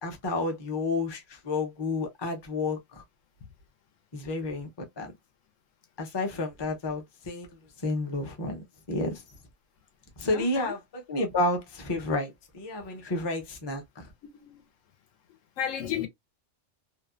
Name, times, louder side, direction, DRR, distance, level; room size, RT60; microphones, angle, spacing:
voice 1, 0.0-3.0 4.1-4.7 5.0-5.1 6.0-9.2 10.2-14.1, left 2 dB, 30° left, 0.5 m, -31 dB
voice 2, 10.3-10.7 14.2-14.7 15.6-16.1, left 9 dB, 80° left, 1.0 m, -33 dB
2.7 x 2.2 x 2.3 m
omnidirectional pair, 1.3 m